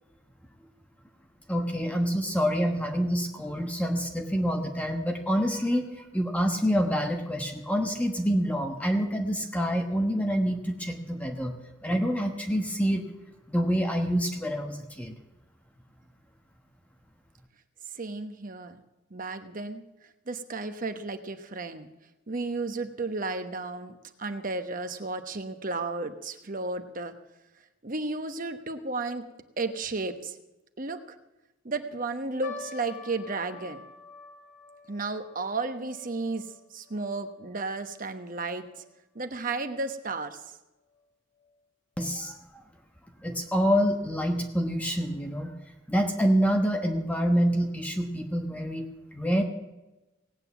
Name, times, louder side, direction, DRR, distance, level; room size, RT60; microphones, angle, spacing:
voice 1, 1.5-11.5 11.8-13.1 13.5-15.1 42.0-42.4 43.2-45.5 45.9-49.4, equal, 5° left, 3 dB, 1.1 m, -27 dB
voice 2, 17.9-18.8 19.1-19.8 20.3-21.9 22.3-23.9 24.2-27.1 27.8-29.2 29.6-30.4 30.8-31.2 31.6-33.8 34.9-36.5 36.7-38.8 39.1-40.4, right 3 dB, 45° right, 8 dB, 1.1 m, -33 dB
sound 1, 32.4-38.9 39.2-39.3 40.0-40.3 40.9-41.0 41.4-41.5, left 5 dB, 75° left, 4.7 m, -48 dB
18.0 x 9.1 x 7.0 m, 1.0 s
head